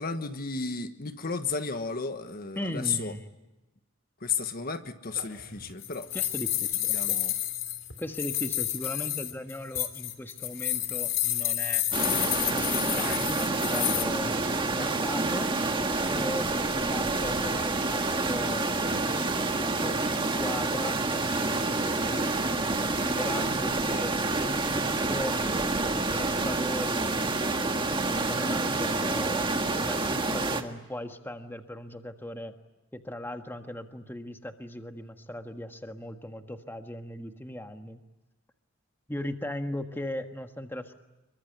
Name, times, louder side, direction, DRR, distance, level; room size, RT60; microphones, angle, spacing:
voice 1, 0.0-3.1 4.2-6.1 6.9-7.3 12.1-12.2, left 5 dB, 45° left, 8 dB, 1.4 m, -33 dB
voice 2, 2.5-3.3 6.1-7.2 8.0-11.8 12.5-14.3 14.6-15.5 16.1-21.0 21.7-25.7 26.0-27.1 28.2-32.5 32.9-38.0 39.1-40.9, left 1 dB, 10° left, 6 dB, 1.6 m, -38 dB
sound 1, 5.1-14.0, left 13 dB, 70° left, 3.1 m, -30 dB
sound 2, 11.9-30.6, right 3 dB, 25° right, 1.8 m, -28 dB
27.0 x 23.5 x 9.4 m, 1.0 s
head